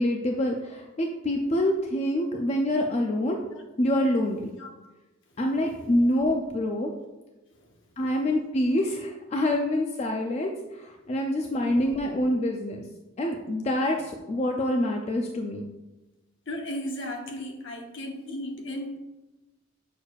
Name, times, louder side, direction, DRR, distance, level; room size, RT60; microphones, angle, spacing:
voice 1, 0.0-3.4 3.8-4.5 5.4-6.9 8.0-12.8 13.2-15.6, left 1 dB, 30° left, 2 dB, 0.4 m, -26 dB
voice 2, 16.5-19.0, left 1 dB, 60° left, 2 dB, 0.9 m, -36 dB
6.4 x 6.3 x 2.4 m, 1.1 s
head